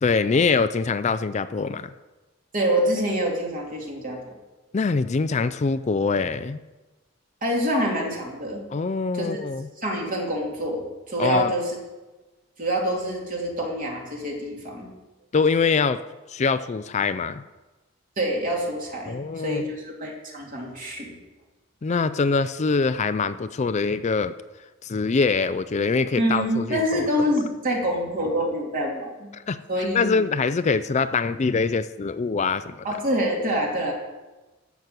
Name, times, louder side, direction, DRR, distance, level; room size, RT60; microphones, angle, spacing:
voice 1, 0.0-1.9 4.7-6.6 8.7-9.7 11.2-11.5 15.3-16.0 16.3-17.4 19.1-19.7 21.8-24.3 24.8-27.1 29.3-29.6 29.9-32.9, left 4 dB, 35° left, 12 dB, 0.4 m, -24 dB
voice 2, 2.5-4.2 7.4-8.6 9.1-9.4 9.8-11.7 12.6-14.9 18.2-21.1 26.2-29.3 29.7-30.2 32.8-33.9, equal, 45° right, -1 dB, 3.0 m, -26 dB
14.0 x 6.1 x 8.0 m, 1.2 s
head